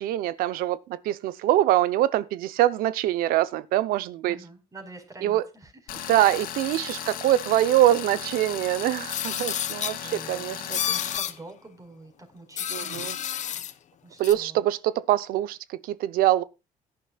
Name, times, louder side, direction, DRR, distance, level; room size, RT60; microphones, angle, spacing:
voice 1, 0.0-4.4 5.2-5.4 6.1-10.8 12.7-13.2 14.2-16.4, right 13 dB, 90° right, 0.8 m, -24 dB
voice 2, 4.2-6.1 6.9-7.2 10.0-13.1 14.0-14.6, right 2 dB, 25° right, 4.8 m, -47 dB
Tools, 5.9-11.2, left 10 dB, 80° left, 2.5 m, -36 dB
sound 1, 9.1-10.0 10.7-11.3 12.6-13.7 14.2-14.3, left 10 dB, 55° left, 1.1 m, -30 dB
17.0 x 11.0 x 2.4 m
cardioid pair, 105°, 15 cm